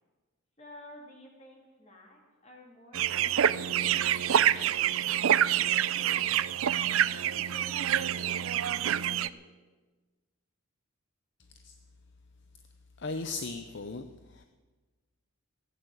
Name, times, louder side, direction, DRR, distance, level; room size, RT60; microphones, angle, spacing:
voice 1, 0.6-5.7 6.0-6.3 7.0-9.4, left 1 dB, 30° left, 0 dB, 3.2 m, -52 dB
sound 1, 2.9-9.3, right 10 dB, 70° right, 0.4 m, -27 dB
voice 2, 13.0-14.1 14.3-14.4, left 3 dB, 55° left, 8 dB, 0.7 m, -36 dB
16.0 x 9.3 x 8.0 m, 1.3 s
head